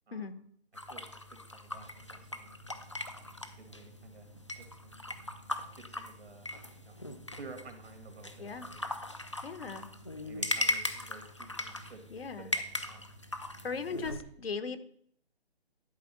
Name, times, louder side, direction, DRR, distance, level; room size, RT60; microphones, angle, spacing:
voice 1, 0.1-0.4 0.9-2.8 3.6-4.3 4.6-5.0 5.8-7.0 7.4-8.8 9.6-9.9 10.2-12.0 12.4-13.0, right 3 dB, 80° right, 6 dB, 2.7 m, -52 dB
sound 1, 0.7-14.2, left 1 dB, 30° left, 0.5 m, -39 dB
sound 2, 1.6-14.2, right 3 dB, 15° right, 0.6 m, -57 dB
voice 2, 9.4-9.9 12.1-12.5 13.6-14.8, left 5 dB, 65° left, 11 dB, 1.1 m, -38 dB
12.0 x 4.1 x 7.3 m, 0.65 s
hypercardioid pair, 175°, 32 cm